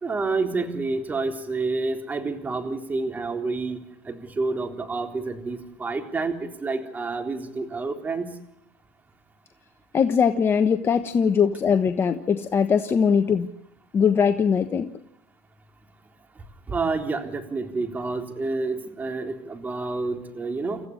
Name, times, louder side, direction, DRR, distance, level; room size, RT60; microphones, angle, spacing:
voice 1, 0.0-3.8 4.0-8.4 16.7-20.8, right 3 dB, 20° right, 5 dB, 3.9 m, -29 dB
voice 2, 9.9-13.5 13.9-14.9, left 6 dB, 30° left, 8 dB, 1.2 m, -21 dB
29.0 x 14.5 x 10.0 m, 0.82 s
supercardioid pair, 100°, 8 cm